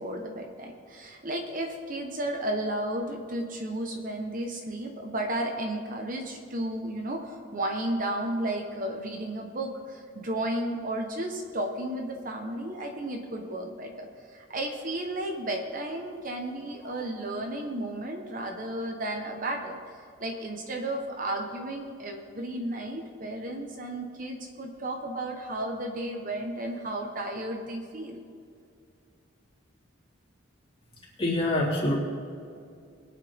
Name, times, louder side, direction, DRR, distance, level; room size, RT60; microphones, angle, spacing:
voice 1, 0.0-28.2, right 1 dB, 40° right, 3 dB, 1.1 m, -33 dB
voice 2, 31.2-32.0, left 1 dB, 25° left, -5 dB, 3.4 m, -26 dB
22.0 x 9.0 x 3.6 m, 2.4 s
head